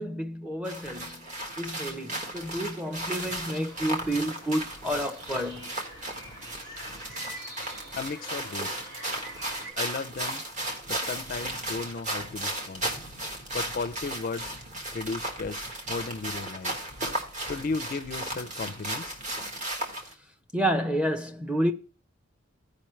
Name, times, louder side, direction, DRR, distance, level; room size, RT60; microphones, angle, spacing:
voice 1, 0.0-5.8 20.5-21.7, right 1 dB, 5° right, 0.6 m, -30 dB
sound 1, 0.6-20.1, right 1 dB, 35° right, 1.4 m, -35 dB
sound 2, 3.2-9.7, right 1 dB, 60° right, 4.6 m, -46 dB
voice 2, 7.9-8.7 9.8-10.4 10.9-12.9 13.5-14.5 14.9-16.8 17.5-19.2, left 4 dB, 45° left, 0.4 m, -35 dB
15.0 x 5.1 x 3.1 m
head